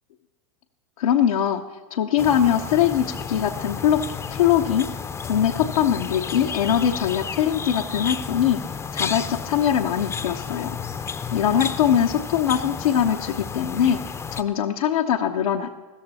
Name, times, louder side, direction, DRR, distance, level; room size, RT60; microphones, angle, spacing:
voice 1, 1.0-1.6 1.9-4.0 4.3-4.9 5.2-8.6 8.9-10.8 11.3-14.0 14.3-15.7, left 9 dB, 85° left, 1 dB, 0.9 m, -22 dB
sound 1, 2.2-14.4, left 6 dB, 15° left, 0.6 m, -32 dB
15.5 x 14.0 x 4.2 m, 1.4 s
hypercardioid pair, 115°, 18 cm